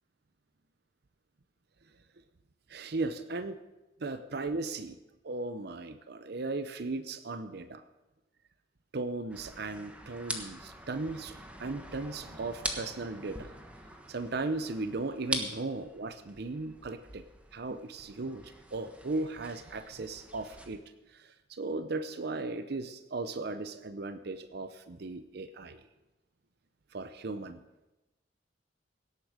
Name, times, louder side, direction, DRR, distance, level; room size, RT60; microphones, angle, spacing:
voice 1, 2.7-3.6 4.0-5.0 5.2-7.8 8.9-13.5 14.1-17.2 17.5-20.8 21.1-25.8 26.9-27.6, right 3 dB, 60° right, 11 dB, 0.6 m, -37 dB
sound 1, 9.3-20.7, right 1 dB, 5° right, 1.3 m, -43 dB
17.5 x 8.3 x 6.4 m, 1.0 s
head